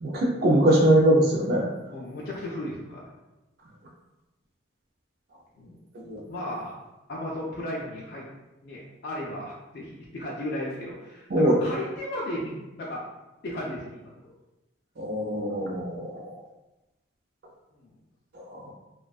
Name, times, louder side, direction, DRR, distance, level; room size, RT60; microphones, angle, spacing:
voice 1, 0.0-1.7 5.9-6.2 11.3-11.5 15.0-16.4 18.3-18.7, right 1 dB, 50° right, -1 dB, 0.4 m, -22 dB
voice 2, 1.9-3.0 5.6-5.8 6.0-6.7 7.1-8.3 8.6-13.1 13.4-14.3 16.1-16.2 17.7-17.9, left 1 dB, 50° left, -5 dB, 0.4 m, -35 dB
2.4 x 2.2 x 2.3 m, 1.0 s
head